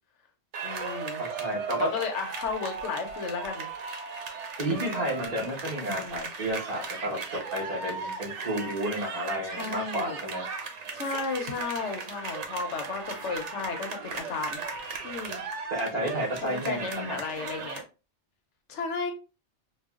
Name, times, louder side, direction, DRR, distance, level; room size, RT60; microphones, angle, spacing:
sound 1, 0.5-17.8, right 5 dB, 85° right, 1.0 m, -37 dB
voice 1, 0.6-1.2 1.8-3.7 5.8-6.3 9.4-10.2 10.9-14.6 15.0-15.4 16.4-17.8 18.7-19.1, left 4 dB, 85° left, 5 dB, 1.1 m, -34 dB
voice 2, 1.2-1.9 4.6-10.4 15.7-17.2, right 1 dB, 35° right, -3 dB, 1.3 m, -31 dB
4.8 x 2.3 x 2.4 m, 0.31 s
omnidirectional pair, 1.2 m